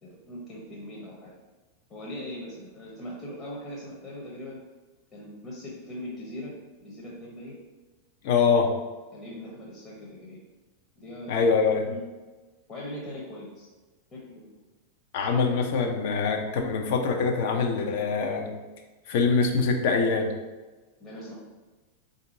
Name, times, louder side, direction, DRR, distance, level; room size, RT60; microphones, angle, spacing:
voice 1, 0.0-1.3 1.9-4.6 5.1-7.6 9.1-10.4 11.0-11.5 11.9-12.0 12.7-13.7 14.1-14.5 21.0-21.4, left 1 dB, 30° left, -4 dB, 0.9 m, -40 dB
voice 2, 8.2-8.7 11.3-11.8 15.1-18.5 19.1-20.3, left 5 dB, 50° left, 3 dB, 0.6 m, -24 dB
4.3 x 2.7 x 3.9 m, 1.2 s
figure-of-eight pair, 90°, 0 cm